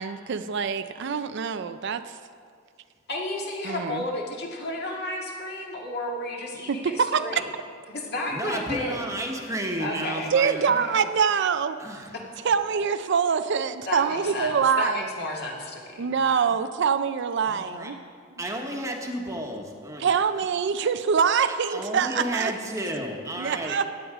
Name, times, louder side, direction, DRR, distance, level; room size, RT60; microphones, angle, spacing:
voice 1, 0.0-2.0 3.6-4.0 6.7-7.4 10.3-11.8 12.4-15.1 16.0-18.0 20.0-22.5 23.4-23.9, right 6 dB, 55° right, 11 dB, 0.4 m, -24 dB
voice 2, 3.1-7.5 7.9-9.1 9.8-10.3 10.6-11.1 12.7-12.9 13.9-16.5, left 1 dB, 50° left, -1 dB, 2.0 m, -33 dB
voice 3, 8.3-10.9 11.8-12.1 17.4-17.9 18.4-20.1 21.5-23.8, right 1 dB, 15° right, 1 dB, 1.2 m, -32 dB
16.0 x 9.4 x 4.9 m, 2.2 s
head